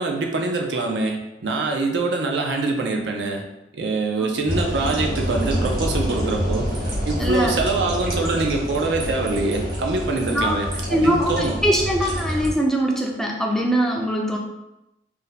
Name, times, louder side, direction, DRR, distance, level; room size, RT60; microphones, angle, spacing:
voice 1, 0.0-3.5 3.7-6.7 7.1-11.6, right 3 dB, 80° right, 1 dB, 0.5 m, -24 dB
sound 1, 4.5-12.5, equal, 60° right, 1.2 m, -27 dB
voice 2, 7.2-7.6 10.3-10.6 10.9-14.4, right 1 dB, ahead, 0 dB, 0.3 m, -22 dB
2.7 x 2.1 x 3.9 m, 0.93 s
head